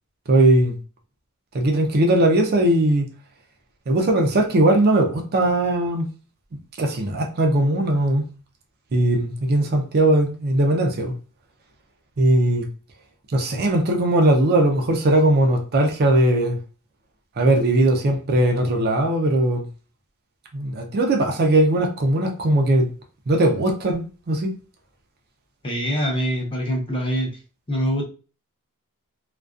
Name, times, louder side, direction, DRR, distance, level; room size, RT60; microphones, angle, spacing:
voice 1, 0.3-0.8 1.5-3.1 3.9-6.1 6.8-8.2 8.9-11.1 12.2-12.7 13.3-16.6 17.4-19.6 20.5-22.9 23.3-24.5, right 1 dB, 45° right, 0.4 m, -19 dB
voice 2, 25.6-27.4 27.7-28.0, equal, 25° left, 0.6 m, -24 dB
2.4 x 2.2 x 2.3 m
head